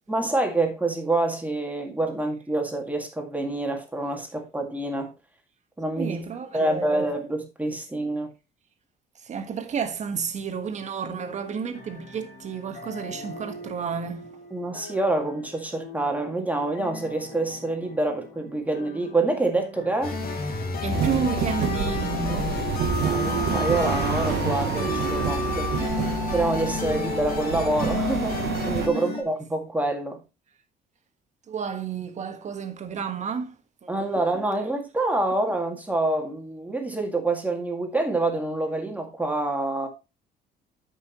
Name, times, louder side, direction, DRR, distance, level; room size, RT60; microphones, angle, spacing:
voice 1, 0.1-5.1 5.8-6.2 6.5-8.3 14.5-20.2 23.0-25.7 26.3-30.2 33.9-39.9, right 2 dB, 10° right, 1.8 m, -27 dB
voice 2, 5.9-7.1 9.2-14.3 20.8-22.5 25.8-25.9 28.9-29.1 31.5-33.5 33.8-33.9, right 6 dB, 45° right, 1.5 m, -31 dB
sound 1, 11.1-21.2, left 2 dB, 80° left, 3.0 m, -43 dB
sound 2, 20.0-29.2, left 4 dB, 60° left, 2.0 m, -29 dB
sound 3, 20.9-28.9, right 11 dB, 75° right, 0.8 m, -29 dB
13.0 x 5.5 x 2.9 m
cardioid pair, 120°, 17 cm